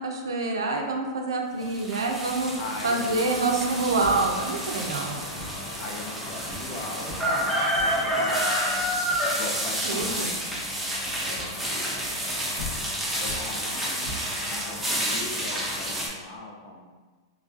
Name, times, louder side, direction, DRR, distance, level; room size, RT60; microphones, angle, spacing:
voice 1, 0.0-2.5 2.8-5.2 9.8-10.3, right 3 dB, 85° right, 2 dB, 0.4 m, -26 dB
sound 1, 1.6-16.1, equal, 5° right, 0.6 m, -29 dB
voice 2, 2.6-4.2 5.8-8.9 9.3-10.5 11.1-12.8 13.1-16.9, left 2 dB, 45° left, 0 dB, 0.5 m, -40 dB
sound 2, 4.0-4.5 5.3-5.7 6.1-6.2 6.5-6.8 7.1-7.4 7.7-8.1 8.8-9.4 10.0-10.2 11.3-11.7 12.3-12.4 12.6-13.6 14.0-14.4, left 2 dB, 80° left, 1.4 m, -40 dB
3.2 x 2.4 x 2.4 m, 1.4 s
hypercardioid pair, 110°, 2 cm